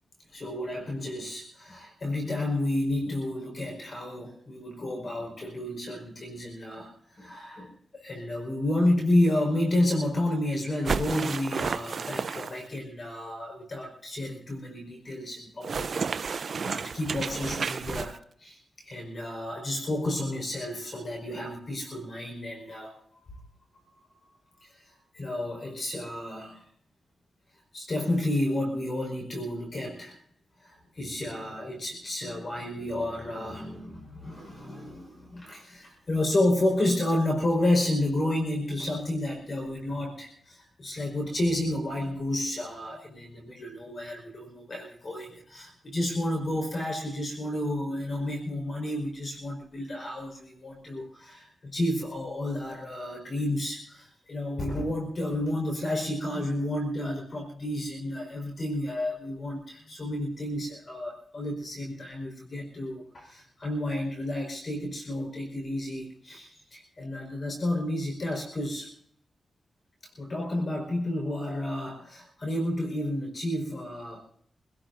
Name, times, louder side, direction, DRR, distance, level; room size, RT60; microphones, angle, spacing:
voice 1, 0.3-18.6 18.8-22.9 24.6-24.8 25.1-26.6 27.7-30.2 30.6-68.9 70.2-74.2, left 1 dB, 50° left, 0 dB, 4.7 m, -31 dB
sound 1, 10.8-12.8 15.6-18.2, right 5 dB, 60° right, 0.6 m, -31 dB
26.0 x 17.5 x 2.7 m, 0.67 s
cardioid pair, 75°, 0 cm